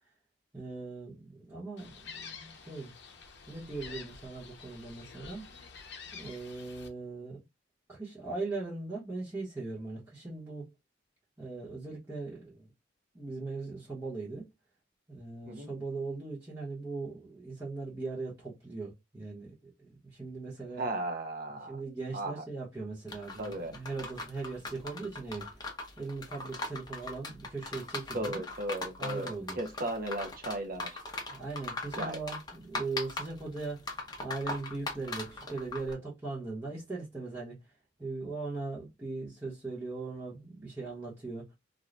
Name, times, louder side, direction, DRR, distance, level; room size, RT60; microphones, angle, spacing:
voice 1, 0.5-2.9 3.5-5.4 6.1-7.4 7.9-10.7 11.4-12.7 13.1-14.5 15.1-20.8 21.7-28.4 29.0-29.6 31.3-37.7 38.0-41.5, right 3 dB, 15° right, 1.0 m, -39 dB
Gull seagull, 1.8-6.9, left 5 dB, 60° left, 0.7 m, -48 dB
voice 2, 20.8-21.8 22.1-22.4 23.4-23.8 28.1-31.0 32.0-32.2, right 1 dB, 50° right, 0.6 m, -36 dB
sound 1, 23.1-35.9, left 2 dB, 20° left, 0.7 m, -40 dB
2.5 x 2.3 x 3.2 m
head